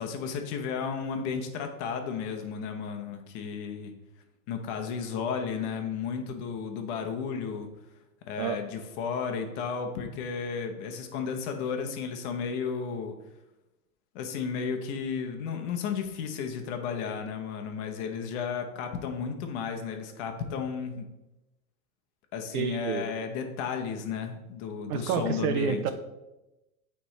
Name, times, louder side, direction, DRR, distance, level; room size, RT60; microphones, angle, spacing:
voice 1, 0.0-3.9 4.5-7.7 8.3-13.1 14.1-21.1 22.3-25.8, left 6 dB, 45° left, 5 dB, 1.0 m, -33 dB
voice 2, 22.5-23.0 24.9-25.9, right 8 dB, 70° right, 9 dB, 0.8 m, -29 dB
9.0 x 3.5 x 3.2 m, 0.99 s
supercardioid pair, 140°, 47 cm